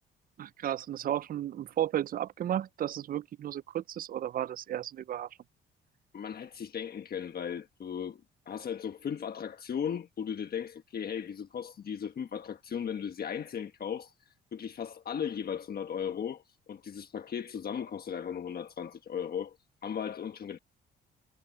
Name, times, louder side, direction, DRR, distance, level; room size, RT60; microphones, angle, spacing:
voice 1, 0.4-5.3, right 11 dB, 45° right, 0.4 m, -33 dB
voice 2, 6.1-14.1 14.5-16.4 16.7-19.6 19.8-20.6, left 8 dB, 50° left, 1.3 m, -36 dB
cardioid pair, 90°, 20 cm